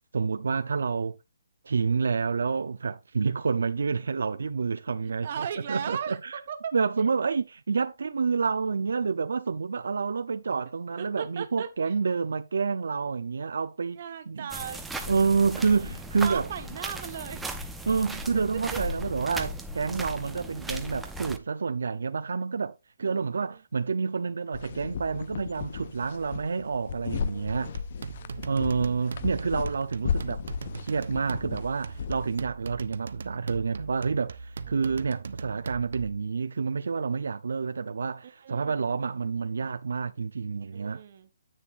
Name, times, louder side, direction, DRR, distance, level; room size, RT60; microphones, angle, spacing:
voice 1, 0.1-1.1 1.6-6.2 6.7-14.0 14.3-14.5 15.1-16.5 17.9-27.7 28.4-30.4 30.8-41.0, right 5 dB, 80° right, 0.7 m, -28 dB
voice 2, 5.0-7.1 11.0-11.9 13.9-14.8 15.5-15.9 16.2-17.5 18.5-19.1 20.3-20.9 23.0-23.6 27.2-27.9 28.2-29.4 34.7-35.2 38.2-38.9 40.7-41.3, right 8 dB, 40° right, 1.4 m, -39 dB
sound 1, 14.5-21.4, right 1 dB, 5° right, 0.7 m, -37 dB
sound 2, 24.5-32.5, left 7 dB, 40° left, 0.4 m, -35 dB
sound 3, 27.5-36.2, right 5 dB, 65° right, 0.9 m, -40 dB
10.5 x 8.1 x 2.6 m
hypercardioid pair, 170°, 0 cm